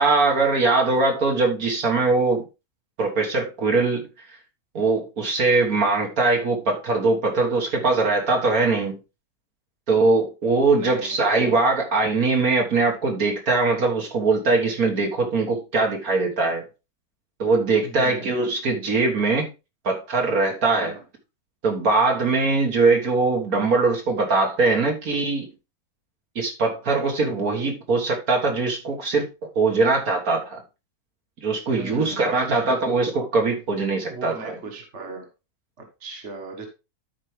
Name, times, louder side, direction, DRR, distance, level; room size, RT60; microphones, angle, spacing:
voice 1, 0.0-2.4 3.0-4.1 4.7-9.0 9.9-16.6 17.4-19.5 19.8-21.0 21.6-25.5 26.4-29.3 29.6-30.6 31.4-34.6, right 3 dB, 65° right, 2.0 m, -21 dB
voice 2, 10.7-11.2 17.8-18.3 20.8-21.0 31.7-32.8 34.1-35.3 35.8-36.7, right 3 dB, 50° right, 1.7 m, -38 dB
12.5 x 4.6 x 3.3 m
omnidirectional pair, 1.7 m